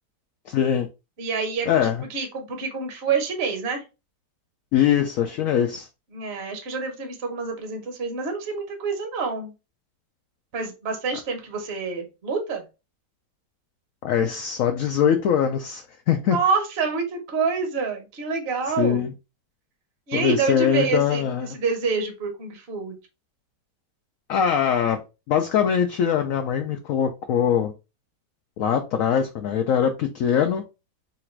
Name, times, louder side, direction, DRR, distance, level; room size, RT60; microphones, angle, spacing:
voice 1, 0.5-0.9 1.7-2.0 4.7-5.9 14.0-16.4 18.8-19.1 20.1-21.6 24.3-25.0 25.3-27.7 28.6-30.6, left 8 dB, 70° left, 0.8 m, -22 dB
voice 2, 1.2-3.8 6.1-9.5 10.5-12.6 16.3-19.0 20.1-23.0, right 5 dB, 45° right, 1.1 m, -27 dB
3.9 x 2.5 x 4.4 m
omnidirectional pair, 1.8 m